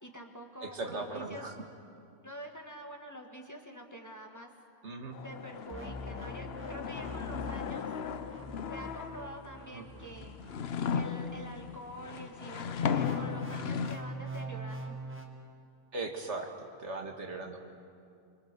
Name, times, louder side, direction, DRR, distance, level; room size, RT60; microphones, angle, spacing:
voice 1, 0.0-1.5 2.2-4.5 5.2-7.9 8.7-10.4 10.9-14.9, equal, 15° left, 2 dB, 1.7 m, -46 dB
voice 2, 0.6-1.5 4.8-5.2 9.7-9.8 15.9-17.6, right 3 dB, 65° right, 3 dB, 2.1 m, -38 dB
sound 1, 5.1-9.5 10.1-14.0, left 7 dB, 60° left, 1.0 m, -36 dB
sound 2, 5.7-12.2 13.0-15.3, right 1 dB, 10° right, 2.1 m, -44 dB
25.0 x 24.0 x 6.8 m, 2.4 s
omnidirectional pair, 1.3 m